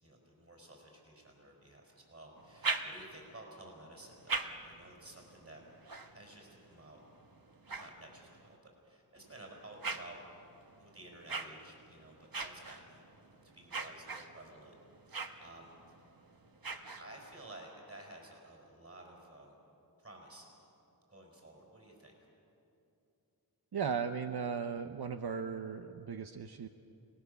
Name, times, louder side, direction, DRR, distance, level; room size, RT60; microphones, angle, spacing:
voice 1, 0.0-7.0 7.7-8.6 8.8-10.2 10.8-13.0 13.5-14.7 15.1-15.7 16.7-19.5 20.0-20.5 21.1-22.1, right 1 dB, 35° right, 0 dB, 5.4 m, -53 dB
sound 1, 2.4-3.4 4.0-8.6 9.2-17.4, right 3 dB, 65° right, 1.3 m, -43 dB
voice 2, 23.7-26.7, right 6 dB, 85° right, 7 dB, 0.8 m, -37 dB
28.5 x 19.0 x 6.9 m, 2.8 s
wide cardioid pair, 45°, 38 cm